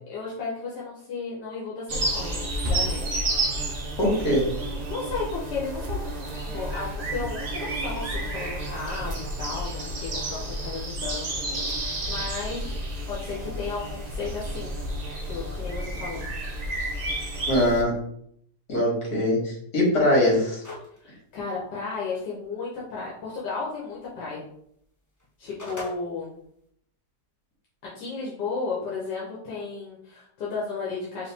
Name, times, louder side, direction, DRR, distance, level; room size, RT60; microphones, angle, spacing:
voice 1, 0.1-2.4 2.7-3.0 4.9-6.0 6.4-11.3 11.7-12.8 13.1-14.7 15.2-16.2 21.0-24.4 25.4-26.4 27.8-31.3, left 4 dB, 85° left, -6 dB, 1.6 m, -34 dB
sound 1, 1.9-17.8, right 1 dB, 70° right, 0.4 m, -31 dB
voice 2, 4.0-4.5 17.5-18.0 18.7-20.6, left 1 dB, 65° left, -5 dB, 2.4 m, -22 dB
sound 2, 20.6-21.0 21.4-21.5 25.2-26.0, left 2 dB, 30° left, 0.3 m, -37 dB
4.8 x 2.7 x 3.5 m, 0.69 s
omnidirectional pair, 1.8 m